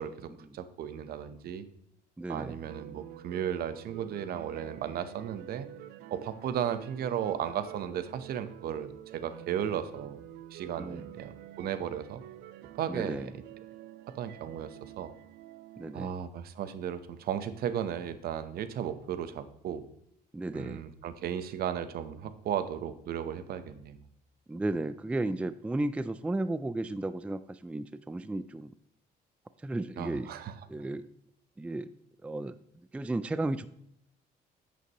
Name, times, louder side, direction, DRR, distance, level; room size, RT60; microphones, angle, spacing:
voice 1, 0.0-1.7 2.3-5.7 6.1-10.2 10.5-12.2 12.8-13.3 14.1-15.1 15.9-19.9 20.5-24.0 30.0-30.5, right 9 dB, 65° right, 12 dB, 0.9 m, -35 dB
voice 2, 2.2-2.6 10.8-11.1 12.9-13.3 15.8-16.1 20.3-20.8 24.5-28.7 29.6-30.3 30.7-31.1 31.6-31.9 32.2-32.6 32.9-33.7, right 2 dB, 5° right, 14 dB, 0.3 m, -34 dB
sound 1, 2.7-15.9, right 13 dB, 90° right, 0.5 m, -48 dB
9.6 x 8.4 x 3.0 m, 0.75 s
cardioid pair, 110°, 17 cm